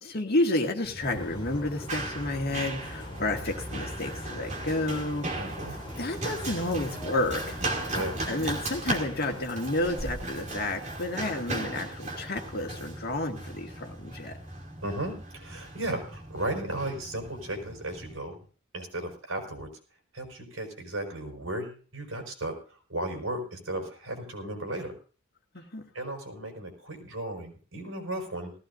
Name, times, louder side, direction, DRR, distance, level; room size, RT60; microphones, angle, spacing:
voice 1, 0.0-5.5 6.0-7.6 8.3-14.3 25.5-25.8, left 2 dB, 50° left, 3 dB, 2.1 m, -30 dB
Run, 0.8-18.1, right 2 dB, 35° right, 2.8 m, -37 dB
sound 1, 1.0-9.5, left 1 dB, 25° left, 2.4 m, -42 dB
voice 2, 5.4-5.8 7.9-8.2 14.8-18.4 18.7-19.7 20.1-24.9 25.9-28.5, right 1 dB, 85° right, 3 dB, 5.2 m, -35 dB
18.5 x 15.5 x 2.7 m, 0.38 s
head